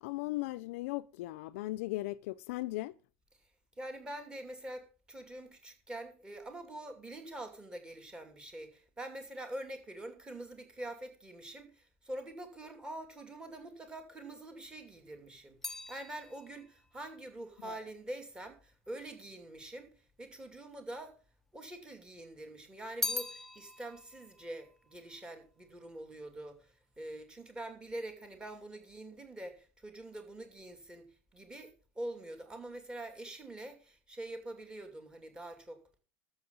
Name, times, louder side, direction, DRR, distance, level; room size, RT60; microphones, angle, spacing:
voice 1, 0.0-2.9 17.7-17.8, left 18 dB, 65° left, 0.6 m, -37 dB
voice 2, 3.8-21.2 21.5-35.8, right 1 dB, 10° right, 2.5 m, -45 dB
sound 1, 14.7-19.1 19.9-20.7 21.0-22.1 22.4-26.0 26.2-26.8, left 3 dB, 5° left, 0.8 m, -43 dB
13.0 x 7.1 x 5.3 m
supercardioid pair, 155°, 8 cm